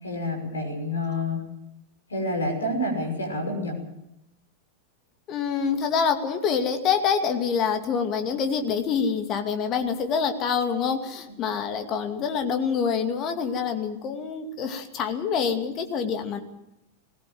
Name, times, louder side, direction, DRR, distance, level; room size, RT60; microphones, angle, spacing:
voice 1, 0.0-1.4 2.1-3.8, left 1 dB, 70° left, 4 dB, 6.2 m, -28 dB
voice 2, 5.3-16.4, left 6 dB, 35° left, 6 dB, 2.4 m, -26 dB
20.5 x 17.0 x 7.8 m, 0.86 s
figure-of-eight pair, 90°, 0 cm